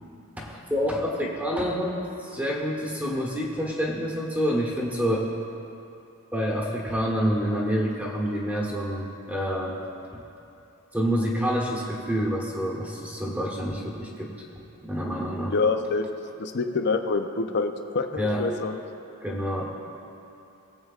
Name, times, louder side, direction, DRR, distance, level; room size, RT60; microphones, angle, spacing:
voice 1, 0.4-2.0 2.2-5.3 6.3-9.8 10.1-10.2 10.9-14.3 14.8-15.5 18.2-18.4 19.2-19.7, equal, 10° right, -3 dB, 1.2 m, -27 dB
voice 2, 15.5-16.1 16.4-18.8, left 4 dB, 50° left, 7 dB, 0.6 m, -26 dB
21.0 x 7.8 x 2.4 m, 2.8 s
head